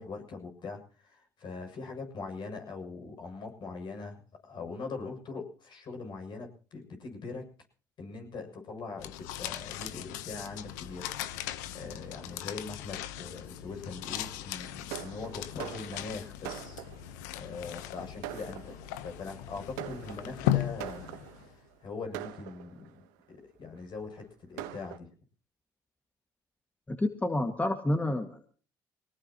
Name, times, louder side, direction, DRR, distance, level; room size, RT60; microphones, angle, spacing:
voice 1, 0.0-7.4 8.0-16.8 17.3-21.5 21.8-25.1, left 4 dB, 55° left, 3 dB, 7.3 m, -42 dB
sound 1, 9.0-21.6, left 12 dB, 90° left, 1.0 m, -38 dB
Fireworks, 14.9-17.2 17.9-18.0 18.2-19.1 19.8-21.5 22.1-23.0 23.8-23.9 24.2-24.3 24.6-25.0, right 12 dB, 90° right, 1.2 m, -43 dB
voice 2, 26.9-28.5, left 1 dB, 15° left, 6 dB, 2.0 m, -29 dB
23.5 x 18.5 x 3.0 m, 0.40 s
supercardioid pair, 65°, 9 cm